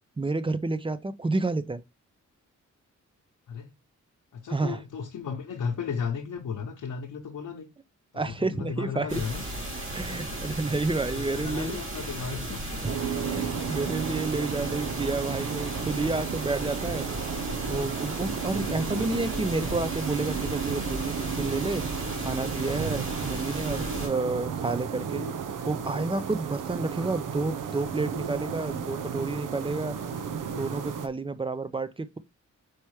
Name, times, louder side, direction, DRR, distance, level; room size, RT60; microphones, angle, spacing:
voice 1, 0.2-1.8 4.5-4.8 8.1-9.2 9.9-11.8 13.3-17.1 17.7-21.8 22.2-25.2 25.7-30.0 30.6-32.2, right 3 dB, 15° right, 0.5 m, -30 dB
voice 2, 4.3-7.7 8.1-9.5 10.1-10.4 11.1-12.8, left 6 dB, 75° left, 1.0 m, -35 dB
sound 1, 9.1-24.1, right 1 dB, 40° right, 3.0 m, -35 dB
sound 2, 12.8-31.1, right 7 dB, 85° right, 0.7 m, -33 dB
4.7 x 4.3 x 4.8 m
wide cardioid pair, 110°, 31 cm